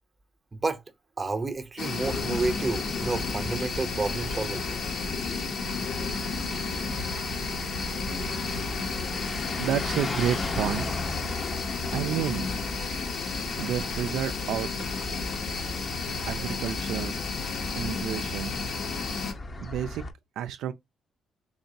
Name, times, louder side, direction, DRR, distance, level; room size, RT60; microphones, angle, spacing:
voice 1, 0.5-0.8 1.2-4.7, right 3 dB, 25° right, 0.7 m, -30 dB
sound 1, 1.8-19.3, left 4 dB, 65° left, 1.0 m, -32 dB
sound 2, 2.0-20.1, left 1 dB, 35° left, 0.7 m, -37 dB
sound 3, 8.3-18.1, left 3 dB, 80° left, 3.0 m, -55 dB
voice 2, 9.6-10.9 11.9-12.5 13.6-14.7 16.3-17.1 17.8-18.5 19.6-20.0 20.4-20.7, right 10 dB, 85° right, 0.3 m, -30 dB
4.2 x 2.9 x 2.6 m
cardioid pair, 90°, 0 cm